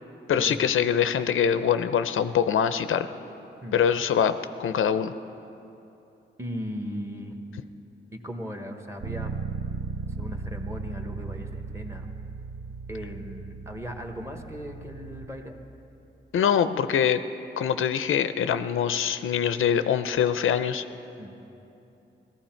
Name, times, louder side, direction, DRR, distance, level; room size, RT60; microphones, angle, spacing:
voice 1, 0.3-3.1 3.7-5.1 16.3-17.2 17.6-20.8, left 8 dB, 85° left, 11 dB, 0.5 m, -24 dB
voice 2, 6.4-7.3 8.1-9.3 10.2-12.1 12.9-15.6 21.2-21.4, equal, 15° right, 4 dB, 1.1 m, -37 dB
Bass guitar, 9.0-15.3, right 4 dB, 65° right, 1.0 m, -36 dB
18.5 x 14.5 x 4.4 m, 2.9 s
wide cardioid pair, 140°, 20 cm